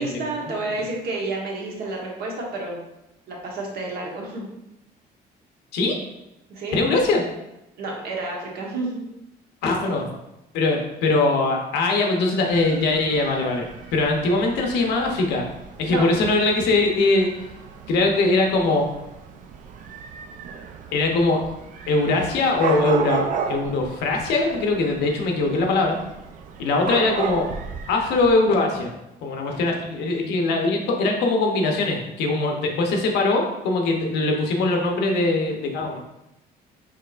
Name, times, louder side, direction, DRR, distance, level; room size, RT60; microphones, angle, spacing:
voice 1, 0.0-2.8 3.3-4.5 6.5-6.8 7.8-9.1 15.9-16.0, right 2 dB, 65° right, -2 dB, 1.1 m, -30 dB
voice 2, 6.7-7.3 9.6-10.1 10.5-13.7 13.9-15.5 15.8-17.3 17.9-18.9 20.9-21.4 21.9-26.0 26.6-27.5 27.9-28.9 29.2-36.1, left 2 dB, 85° left, 2 dB, 0.8 m, -21 dB
Dog / Cat, 12.5-28.3, right 6 dB, 50° right, 0.4 m, -34 dB
4.6 x 2.8 x 2.4 m, 0.92 s
cardioid pair, 110°, 17 cm